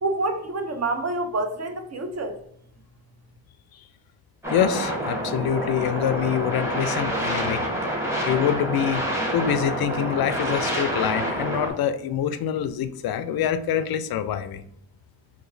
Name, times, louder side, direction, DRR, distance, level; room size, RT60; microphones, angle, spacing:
voice 1, 0.0-2.4, right 2 dB, 35° right, 0.6 m, -27 dB
sound 1, 4.4-11.7, right 1 dB, 5° right, 1.1 m, -27 dB
voice 2, 4.5-7.6 8.3-9.0 9.3-14.6, left 9 dB, 50° left, 0.5 m, -25 dB
3.8 x 2.8 x 2.6 m
cardioid pair, 70°, 49 cm